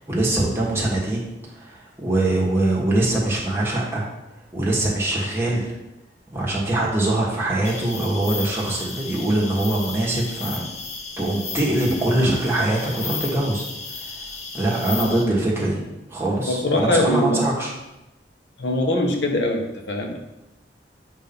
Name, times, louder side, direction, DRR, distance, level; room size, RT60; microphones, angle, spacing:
voice 1, 0.0-4.0 4.5-5.7 6.3-10.7 11.2-13.6 14.0-14.1 14.5-15.8 16.1-17.7, right 1 dB, 15° right, -5 dB, 1.4 m, -23 dB
sound 1, 7.6-15.2, left 4 dB, 40° left, 0.8 m, -34 dB
voice 2, 16.5-17.4 18.6-20.2, left 1 dB, 75° left, 2 dB, 1.0 m, -22 dB
7.7 x 2.8 x 5.3 m, 0.96 s
head